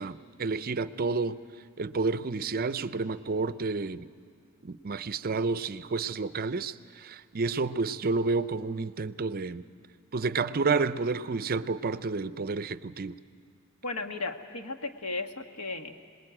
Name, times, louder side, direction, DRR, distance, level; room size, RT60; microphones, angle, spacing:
voice 1, 0.0-1.4 1.8-4.1 4.6-9.6 10.1-13.2, right 4 dB, 45° right, 14 dB, 0.5 m, -30 dB
voice 2, 13.8-16.0, left 3 dB, 85° left, 6 dB, 1.5 m, -35 dB
26.5 x 20.5 x 8.9 m, 2.2 s
head